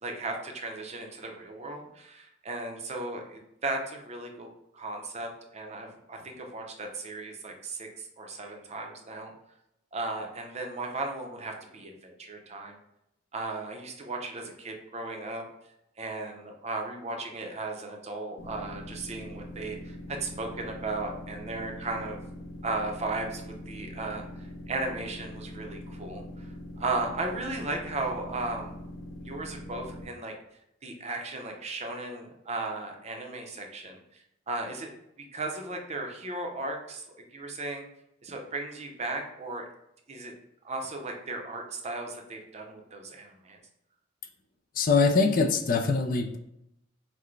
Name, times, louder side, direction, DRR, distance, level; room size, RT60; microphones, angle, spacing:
voice 1, 0.0-4.5 4.7-9.3 9.9-12.8 13.3-15.4 16.0-22.2 22.6-28.7 29.2-30.4 30.8-34.9 35.2-37.0 37.3-37.8 38.2-39.7 40.1-40.3 40.6-43.6, right 2 dB, 35° right, 2 dB, 0.6 m, -36 dB
sound 1, 18.4-30.0, equal, 70° left, 0.9 m, -43 dB
voice 2, 44.7-46.4, left 4 dB, 45° left, 6 dB, 0.4 m, -23 dB
5.9 x 2.1 x 3.2 m, 0.81 s
head